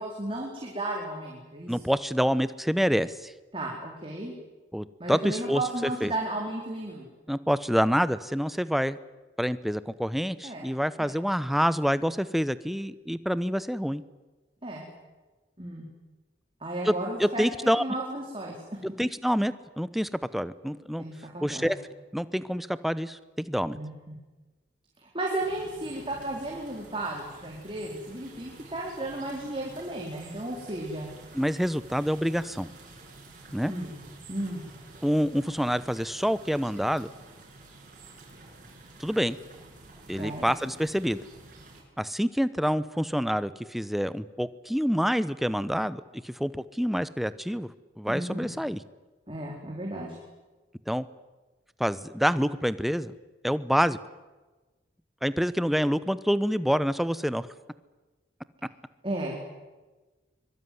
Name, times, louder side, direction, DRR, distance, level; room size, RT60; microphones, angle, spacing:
voice 1, 0.0-1.7 3.5-4.3 5.0-7.1 10.4-10.7 11.0-11.2 14.6-14.9 15.6-15.9 16.6-17.5 17.8-18.6 21.0-21.7 23.7-24.1 25.0-31.1 33.6-33.9 34.3-34.6 40.2-40.5 48.1-48.5 49.3-50.2 59.0-59.4, right 1 dB, 30° right, -1 dB, 4.4 m, -34 dB
voice 2, 1.7-3.3 4.7-5.6 6.0-6.1 7.3-9.0 9.4-14.0 16.8-16.9 17.2-17.8 19.0-21.0 21.4-21.8 22.1-23.8 31.3-32.7 33.5-33.7 35.0-37.1 39.0-39.4 40.1-41.2 42.0-47.7 48.0-48.8 50.9-51.1 51.8-53.1 53.4-54.0 55.2-57.5, equal, ahead, 15 dB, 0.8 m, -27 dB
sound 1, 25.4-41.8, right 2 dB, 45° right, 8.0 m, -50 dB
24.5 x 23.5 x 9.5 m, 1.2 s
head